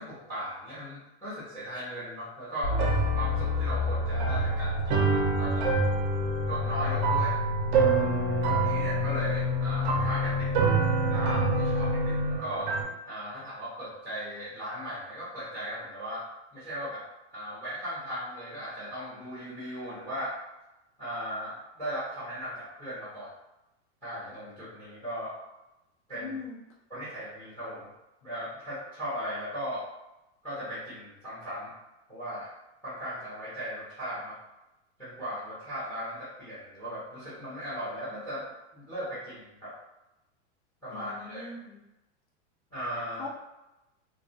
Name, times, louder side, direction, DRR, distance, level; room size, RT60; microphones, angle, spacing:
voice 1, 0.0-2.8 3.1-5.7 6.5-7.4 8.5-10.5 11.1-12.7 13.0-16.3 16.5-17.0 17.3-20.4 21.0-23.3 24.0-25.3 26.1-26.4 26.9-27.9 28.2-29.8 30.4-31.7 32.1-32.5 32.8-34.4 35.0-39.7 40.8-41.5 42.7-43.2, equal, 5° left, -9 dB, 0.5 m, -37 dB
sound 1, 2.6-12.4, left 5 dB, 85° left, 0.5 m, -30 dB
sound 2, 2.7-12.8, right 6 dB, 45° right, 0.4 m, -28 dB
voice 2, 26.1-26.6 40.9-41.8 43.2-43.3, left 4 dB, 65° left, -4 dB, 0.9 m, -40 dB
2.3 x 2.1 x 2.6 m, 0.96 s
supercardioid pair, 170°, 34 cm